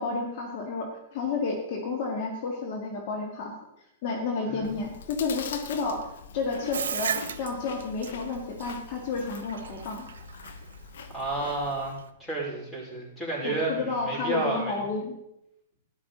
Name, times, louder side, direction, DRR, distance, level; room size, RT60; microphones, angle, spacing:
voice 1, 0.0-3.5 4.0-6.1 6.3-10.1 13.4-15.2, left 4 dB, 50° left, 1 dB, 2.1 m, -31 dB
Chewing mastication, 4.6-11.9, left 6 dB, 70° left, 1.2 m, -43 dB
Bathtub (filling or washing), 6.7-12.1, right 7 dB, 75° right, 0.9 m, -35 dB
voice 2, 11.1-14.8, right 2 dB, 10° left, -4 dB, 5.0 m, -31 dB
13.0 x 11.0 x 4.0 m, 0.82 s
hypercardioid pair, 120°, 0 cm